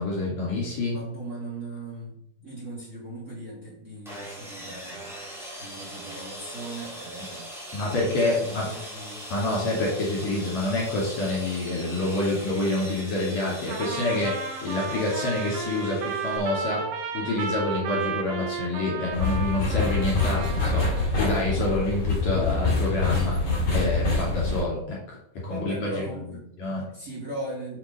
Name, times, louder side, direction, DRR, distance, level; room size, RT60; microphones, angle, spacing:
voice 1, 0.0-1.0 7.7-8.7 9.3-16.8 17.1-23.4 23.7-25.2 25.4-26.0 26.6-26.8, left 2 dB, 50° left, -4 dB, 3.8 m, -27 dB
voice 2, 0.9-5.1 5.6-9.3 21.5-21.7 25.5-26.5 26.9-27.8, right 1 dB, 20° right, -6 dB, 3.1 m, -38 dB
Sawing, 4.0-16.4, equal, ahead, 1.5 m, -40 dB
Trumpet, 13.7-21.1, right 6 dB, 75° right, 3.1 m, -33 dB
sound 1, 19.1-24.6, left 3 dB, 35° left, 2.4 m, -25 dB
6.8 x 5.9 x 5.5 m, 0.74 s
omnidirectional pair, 4.3 m